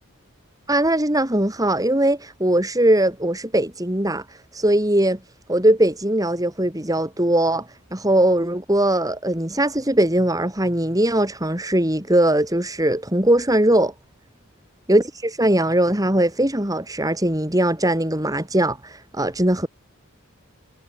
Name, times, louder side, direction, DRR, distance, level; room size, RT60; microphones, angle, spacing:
voice 1, 0.7-4.2 4.5-5.2 5.5-13.9 14.9-19.7, right 1 dB, 15° right, 3.1 m, -20 dB
head